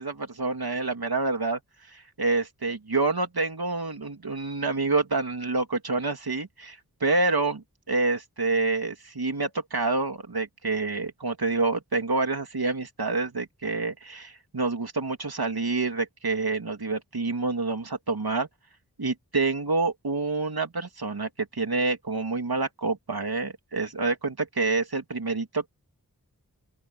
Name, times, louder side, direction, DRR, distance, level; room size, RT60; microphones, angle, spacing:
voice 1, 0.0-1.6 1.9-18.5 19.0-25.7, right 3 dB, 75° right, 2.9 m, -27 dB
open air
wide cardioid pair, 45°, 37 cm